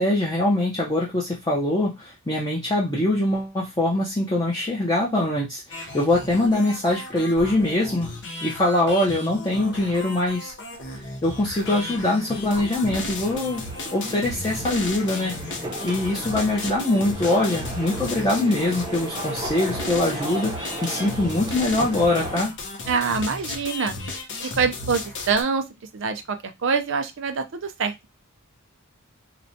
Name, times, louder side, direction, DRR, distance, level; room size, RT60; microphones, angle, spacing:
voice 1, 0.0-8.1 8.4-10.5 10.9-13.7 13.9-22.5, left 1 dB, 20° left, -4 dB, 0.6 m, -23 dB
sound 1, 5.7-25.4, left 2 dB, 55° left, 0.7 m, -34 dB
sound 2, 11.5-22.4, right 1 dB, 20° right, 0.7 m, -35 dB
voice 2, 22.9-23.9 24.6-25.6 25.9-28.2, right 5 dB, 60° right, 8 dB, 0.5 m, -25 dB
4.2 x 2.1 x 2.6 m, 0.21 s
head